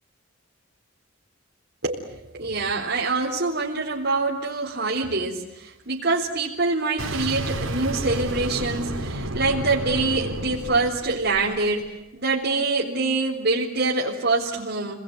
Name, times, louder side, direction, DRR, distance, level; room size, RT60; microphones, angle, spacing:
voice 1, 1.8-15.0, right 3 dB, 55° right, -4 dB, 4.2 m, -25 dB
Boom, 7.0-11.8, right 1 dB, 80° right, 4.6 m, -31 dB
29.5 x 21.0 x 9.5 m, 0.94 s
head